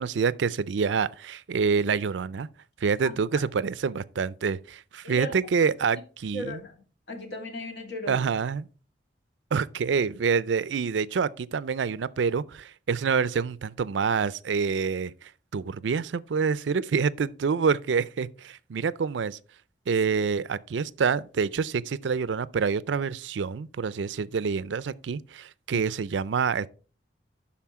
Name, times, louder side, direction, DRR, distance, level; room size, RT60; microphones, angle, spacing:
voice 1, 0.0-2.5 2.8-6.6 8.1-8.7 9.5-19.4 19.9-26.7, right 5 dB, 80° right, 0.4 m, -27 dB
voice 2, 5.0-5.4 6.3-6.7 7.1-8.2, equal, 75° left, 2.3 m, -36 dB
11.5 x 4.3 x 4.7 m
head